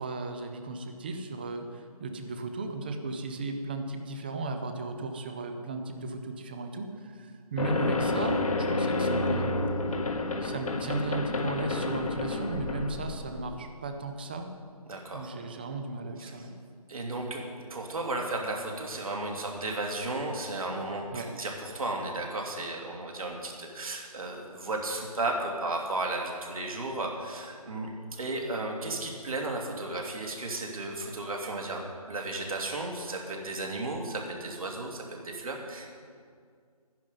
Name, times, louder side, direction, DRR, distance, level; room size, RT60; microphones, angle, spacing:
voice 1, 0.0-9.6 10.4-14.5 15.1-16.5 21.1-21.3, right 3 dB, 15° right, 6 dB, 0.5 m, -35 dB
sound 1, 7.6-13.6, left 2 dB, 65° left, 1.2 m, -30 dB
voice 2, 14.9-15.3 16.2-16.3 16.9-36.0, right 2 dB, 65° right, 0 dB, 2.6 m, -34 dB
12.5 x 10.5 x 5.4 m, 2.1 s
figure-of-eight pair, 160°, 20 cm